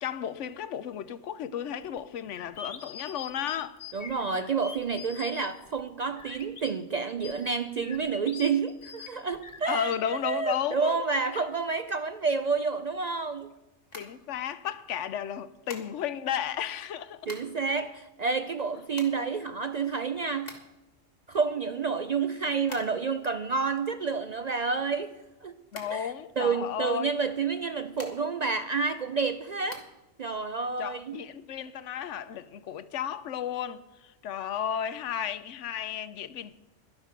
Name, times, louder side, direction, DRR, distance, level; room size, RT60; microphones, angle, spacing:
voice 1, 0.0-3.8 9.7-11.0 13.9-17.3 25.7-27.1 30.8-36.5, left 9 dB, 90° left, 1.0 m, -33 dB
sound 1, 1.8-6.7 7.2-10.0, left 6 dB, 65° left, 1.3 m, -44 dB
voice 2, 3.9-13.5 17.3-20.6 21.3-25.1 25.4-25.5 25.9-29.8 30.2-31.2, right 5 dB, 55° right, 0.4 m, -29 dB
sound 2, 13.9-14.8 15.7-16.3 16.9-17.7 18.0-18.1 18.3-20.9 21.3-23.2 23.5-25.3 25.7-26.7 27.5-28.5 28.9-29.8, left 2 dB, 35° left, 1.7 m, -47 dB
12.0 x 11.0 x 5.1 m
omnidirectional pair, 1.2 m